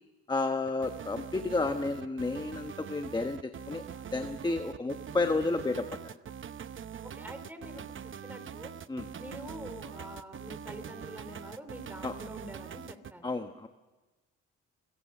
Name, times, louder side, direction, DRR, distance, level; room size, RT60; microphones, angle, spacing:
voice 1, 0.3-3.8 4.1-6.2 8.9-9.1 12.0-12.1 13.2-13.7, left 3 dB, 15° left, 7 dB, 1.1 m, -31 dB
sound 1, 0.7-13.1, right 8 dB, 40° right, 0.8 m, -43 dB
voice 2, 7.0-8.7 9.2-13.3, equal, 5° right, 8 dB, 4.2 m, -46 dB
26.5 x 17.5 x 6.7 m, 1.2 s
cardioid pair, 90°, 30 cm